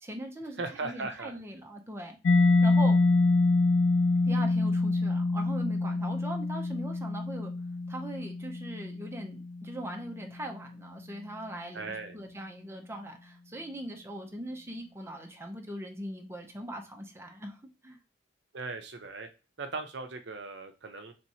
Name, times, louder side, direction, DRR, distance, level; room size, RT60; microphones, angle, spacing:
voice 1, 0.0-2.2 2.6-3.0 4.2-7.5 7.9-18.0, right 1 dB, 15° right, 2 dB, 0.6 m, -40 dB
voice 2, 0.6-1.4 11.7-12.2 18.5-19.3 19.6-21.1, right 3 dB, 60° right, 6 dB, 0.6 m, -38 dB
Mallet percussion, 2.3-9.8, left 3 dB, 70° left, 0.4 m, -26 dB
3.5 x 2.9 x 4.2 m, 0.30 s
head